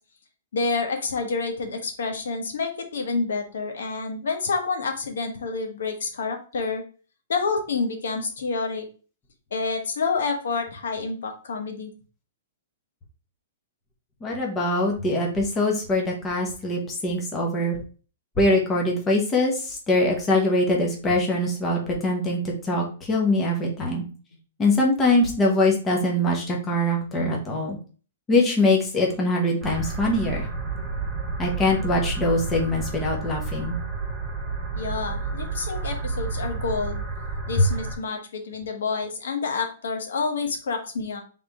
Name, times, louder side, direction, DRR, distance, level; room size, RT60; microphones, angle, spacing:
voice 1, 0.5-6.8 7.3-8.9 9.5-11.9 34.8-37.0 37.5-41.2, left 4 dB, 85° left, 4 dB, 1.1 m, -28 dB
voice 2, 14.2-17.8 18.4-24.0 24.6-27.8 28.3-30.5 31.4-33.8 37.6-37.7, left 1 dB, 15° left, 0 dB, 1.1 m, -23 dB
sound 1, 29.6-38.0, right 4 dB, 5° right, 1.9 m, -30 dB
3.6 x 3.4 x 4.2 m, 0.38 s
hypercardioid pair, 160°, 0 cm